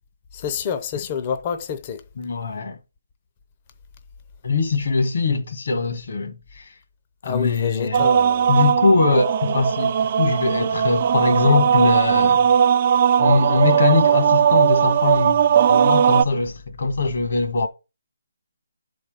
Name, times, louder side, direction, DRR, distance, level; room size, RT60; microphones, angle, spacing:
voice 1, 0.3-2.0 7.2-8.6, left 7 dB, 25° left, 0.6 m, -28 dB
voice 2, 2.2-2.8 4.4-6.6 7.2-8.0 8.5-12.5 13.2-17.7, left 4 dB, 60° left, 1.4 m, -22 dB
sound 1, 7.9-16.2, right 8 dB, 35° right, 0.3 m, -18 dB
10.5 x 4.3 x 5.0 m
hypercardioid pair, 165°, 0 cm